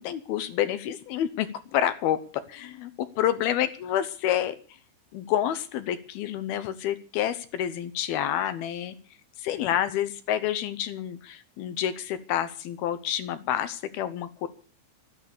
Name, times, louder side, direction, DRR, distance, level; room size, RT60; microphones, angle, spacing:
voice 1, 0.0-4.6 5.1-8.9 9.4-14.5, left 11 dB, 75° left, 12 dB, 2.7 m, -28 dB
14.0 x 13.0 x 6.8 m, 0.39 s
omnidirectional pair, 4.9 m